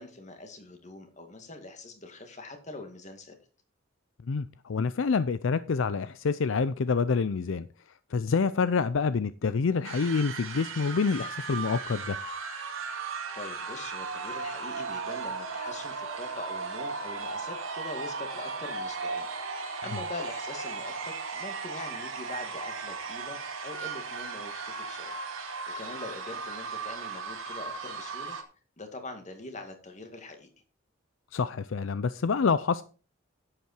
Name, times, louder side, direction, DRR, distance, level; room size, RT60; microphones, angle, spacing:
voice 1, 0.0-3.4 13.3-19.3 19.6-25.2 25.8-28.4 28.8-30.5, left 2 dB, 35° left, 2.2 m, -43 dB
voice 2, 4.3-7.7 8.1-12.2 31.3-32.8, left 5 dB, 70° left, 0.5 m, -27 dB
sound 1, 9.8-28.4, right 4 dB, 80° right, 2.1 m, -36 dB
10.5 x 8.4 x 4.4 m
head